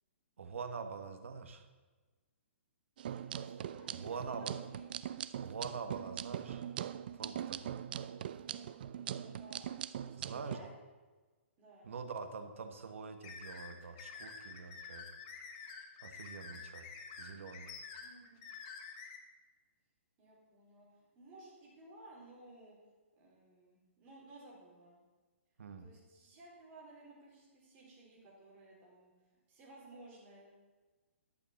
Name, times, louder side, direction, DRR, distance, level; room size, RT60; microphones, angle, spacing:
voice 1, 0.4-1.7 3.9-4.5 5.4-6.7 7.1-7.8 10.2-10.7 11.8-15.1 16.0-16.9 17.2-17.7 25.6-25.9, right 5 dB, 70° right, 8 dB, 1.5 m, -45 dB
sound 1, 3.0-10.6, right 10 dB, 45° right, 0.4 m, -42 dB
voice 2, 3.1-4.8 8.4-9.8 10.0-10.7 11.6-11.9 18.0-18.5 20.2-20.9 21.1-22.8 23.2-25.0 25.8-29.1 29.5-30.6, right 2 dB, 25° right, -5 dB, 4.2 m, -57 dB
sound 2, 13.2-19.2, left 5 dB, 30° left, 1.4 m, -49 dB
11.5 x 7.0 x 6.9 m, 1.3 s
hypercardioid pair, 165°, 7 cm